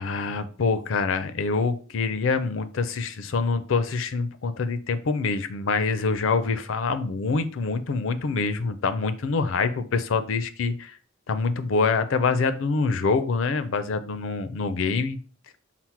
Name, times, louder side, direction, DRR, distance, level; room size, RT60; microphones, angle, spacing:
voice 1, 0.0-11.0 11.3-15.2, left 4 dB, 70° left, 11 dB, 0.5 m, -25 dB
5.7 x 2.0 x 4.5 m, 0.41 s
head